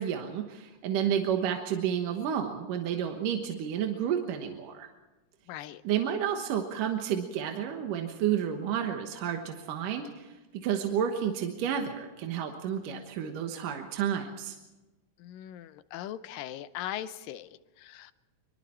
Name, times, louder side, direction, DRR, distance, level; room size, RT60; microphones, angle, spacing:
voice 1, 0.0-4.9 5.8-14.6, right 9 dB, 75° right, 4 dB, 2.8 m, -31 dB
voice 2, 5.5-5.8 15.2-18.1, left 12 dB, 85° left, 13 dB, 2.5 m, -40 dB
25.0 x 24.0 x 4.4 m, 1.1 s
omnidirectional pair, 3.8 m